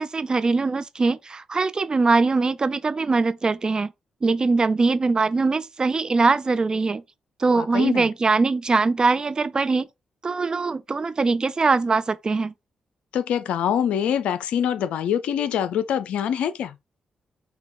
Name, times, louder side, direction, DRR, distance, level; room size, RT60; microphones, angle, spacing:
voice 1, 0.0-3.9 4.2-7.0 7.4-9.9 10.2-12.5, right 3 dB, 40° right, 0.5 m, -22 dB
voice 2, 7.6-8.1 13.1-16.8, left 9 dB, 75° left, 0.4 m, -24 dB
5.8 x 2.3 x 3.6 m
hypercardioid pair, 40°, 2 cm